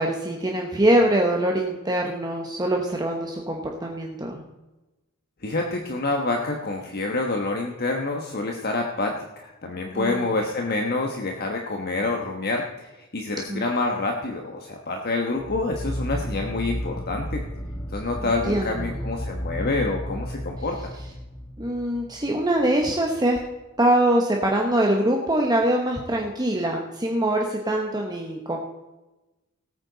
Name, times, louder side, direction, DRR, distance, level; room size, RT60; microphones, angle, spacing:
voice 1, 0.0-4.4 9.9-10.3 13.5-13.6 18.2-18.9 21.6-23.4 23.8-28.6, right 1 dB, 20° right, 0 dB, 1.2 m, -23 dB
voice 2, 5.4-17.4 17.9-20.9, left 3 dB, 45° left, 2 dB, 1.2 m, -27 dB
sound 1, 15.4-22.7, equal, 15° left, 0.6 m, -33 dB
18.0 x 8.9 x 4.0 m, 1.0 s
head